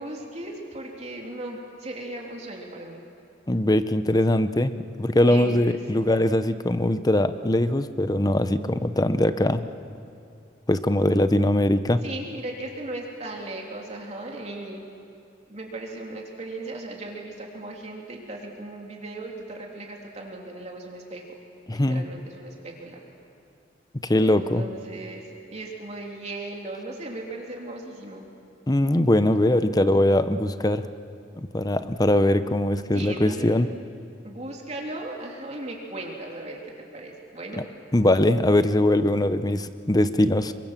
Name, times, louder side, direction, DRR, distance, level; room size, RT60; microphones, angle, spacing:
voice 1, 0.0-3.0 5.2-5.8 12.0-14.8 15.5-21.2 21.7-23.0 24.2-28.3 32.9-33.5 34.2-37.7, right 2 dB, 40° right, -1 dB, 3.1 m, -37 dB
voice 2, 3.5-4.7 5.0-9.6 10.7-12.0 21.7-22.0 24.0-24.6 28.7-30.8 31.4-33.7 37.9-40.5, left 1 dB, 20° left, 11 dB, 0.9 m, -21 dB
28.0 x 24.5 x 7.5 m, 2.6 s
head